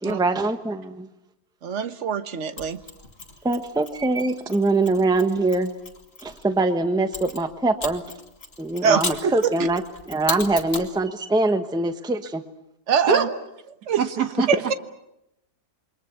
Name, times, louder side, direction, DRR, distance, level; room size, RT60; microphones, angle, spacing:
voice 1, 0.0-1.1 3.4-5.7 6.2-8.0 8.6-12.4, right 2 dB, 5° right, 8 dB, 1.0 m, -23 dB
voice 2, 1.6-2.8 8.8-9.5 12.9-13.3 13.9-14.0 14.5-14.7, right 7 dB, 45° right, 10 dB, 1.4 m, -23 dB
Mechanisms, 2.6-6.4 7.1-10.9, left 3 dB, 35° left, 2.8 m, -36 dB
voice 3, 14.0-14.5, right 6 dB, 70° right, 7 dB, 2.2 m, -22 dB
28.5 x 24.0 x 7.1 m, 0.85 s
omnidirectional pair, 1.8 m